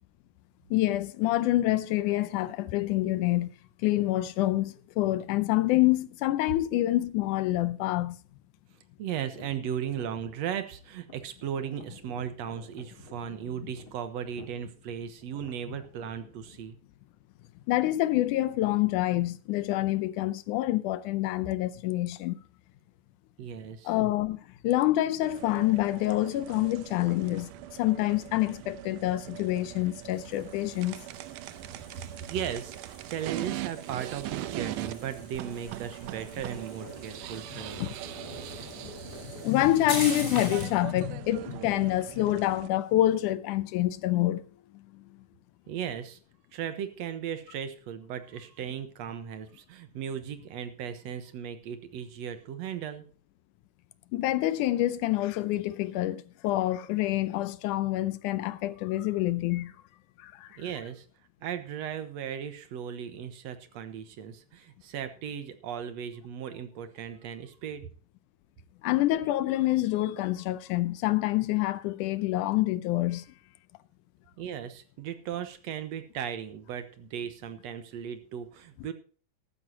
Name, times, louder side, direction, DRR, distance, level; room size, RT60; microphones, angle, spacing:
voice 1, 0.7-3.5 3.8-8.2 17.7-22.4 23.9-27.5 27.8-31.0 37.8-37.9 38.8-38.9 39.2-44.4 54.1-59.7 60.2-60.6 68.8-73.3, left 15 dB, 80° left, 2.1 m, -27 dB
voice 2, 9.0-16.8 23.4-23.9 32.3-38.0 45.7-46.2 46.5-53.0 60.6-61.1 61.4-67.9 74.4-78.9, right 9 dB, 65° right, 2.1 m, -37 dB
sound 1, 9.3-16.7, left 2 dB, 40° left, 3.4 m, -52 dB
sound 2, 25.2-42.7, right 14 dB, 80° right, 2.2 m, -41 dB
sound 3, 30.1-40.8, left 1 dB, 15° left, 5.9 m, -43 dB
14.0 x 12.5 x 2.8 m
omnidirectional pair, 3.6 m